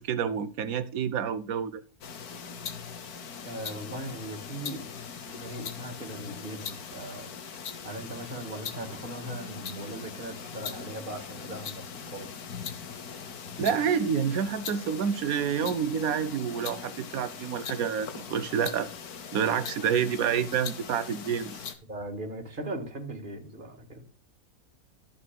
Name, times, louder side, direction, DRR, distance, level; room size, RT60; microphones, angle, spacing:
voice 1, 0.0-1.8 13.6-18.9 19.3-21.6, right 7 dB, 70° right, 1.2 m, -28 dB
sound 1, 2.0-21.7, left 7 dB, 80° left, 1.5 m, -40 dB
voice 2, 3.4-5.0 5.3-12.3 21.9-24.0, right 1 dB, 35° right, 1.9 m, -39 dB
14.0 x 8.0 x 2.3 m
omnidirectional pair, 1.6 m